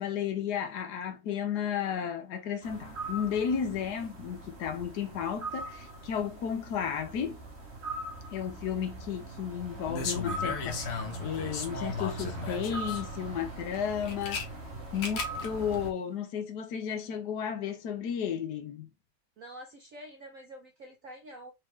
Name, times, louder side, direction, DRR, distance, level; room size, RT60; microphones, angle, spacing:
voice 1, 0.0-7.4 8.3-14.4 14.9-18.9, left 8 dB, 60° left, 1.2 m, -33 dB
sound 1, 2.6-15.9, right 2 dB, 40° right, 1.1 m, -40 dB
sound 2, 9.9-13.0 13.7-14.4 14.9-15.5 15.7-15.8, left 5 dB, 75° left, 2.0 m, -36 dB
voice 2, 19.4-21.5, right 1 dB, 75° right, 0.7 m, -47 dB
4.5 x 3.6 x 3.1 m
omnidirectional pair, 2.4 m